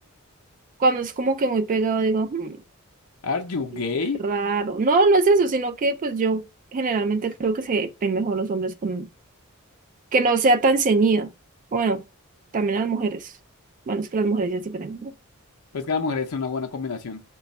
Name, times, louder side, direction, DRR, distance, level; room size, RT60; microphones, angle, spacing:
voice 1, 0.8-2.6 4.2-6.4 6.7-9.1 10.1-11.3 11.7-12.0 12.5-13.3 13.9-15.1, right 3 dB, 35° right, 0.3 m, -22 dB
voice 2, 3.2-4.2 15.7-17.2, left 4 dB, 75° left, 0.6 m, -27 dB
5.6 x 2.3 x 4.0 m
head